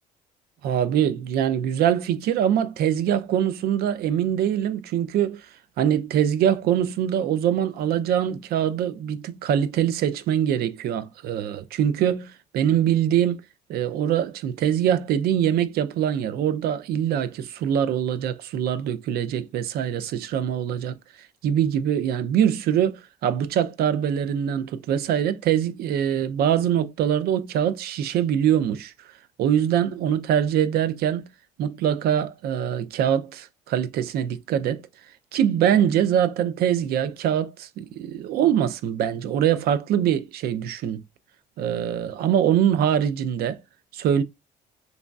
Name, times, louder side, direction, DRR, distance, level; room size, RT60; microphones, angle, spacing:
voice 1, 0.6-5.5 5.8-13.4 13.7-20.9 21.4-28.9 29.4-31.3 31.6-34.8 35.3-41.0 41.6-43.6 43.9-44.2, right 9 dB, 65° right, 0.4 m, -23 dB
3.0 x 2.6 x 2.2 m
cardioid pair, 110°, 17 cm